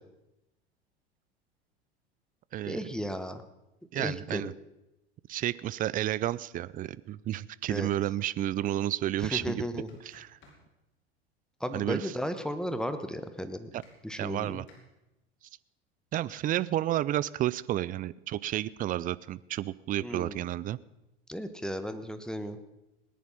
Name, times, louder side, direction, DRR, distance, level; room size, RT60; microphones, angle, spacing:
voice 1, 2.7-3.4 3.9-4.5 7.7-7.9 9.2-9.9 11.6-13.7 14.0-14.6 20.0-20.4 21.3-22.6, equal, ahead, 9 dB, 1.2 m, -35 dB
voice 2, 3.9-4.5 5.3-9.6 10.0-10.4 11.7-12.2 13.7-13.8 14.2-14.6 16.1-20.8, right 13 dB, 25° right, 19 dB, 0.5 m, -31 dB
sound 1, 9.7-10.6 13.8-14.8, left 3 dB, 35° left, 4.8 m, -57 dB
19.0 x 10.5 x 5.7 m, 0.94 s
hypercardioid pair, 85°, 32 cm